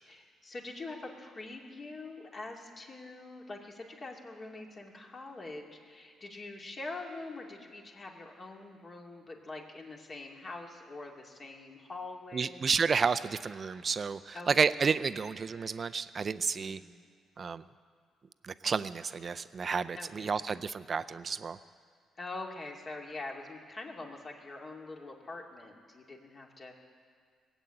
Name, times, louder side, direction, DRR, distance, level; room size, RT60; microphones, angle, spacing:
voice 1, 0.1-12.7 14.3-14.7 16.6-17.0 19.9-20.4 22.2-26.8, left 2 dB, 40° left, 0 dB, 2.4 m, -44 dB
voice 2, 12.3-16.8 17.4-17.6 18.4-21.6, right 5 dB, 40° right, 13 dB, 0.5 m, -31 dB
20.0 x 8.1 x 8.8 m, 2.1 s
cardioid pair, 90°, 0 cm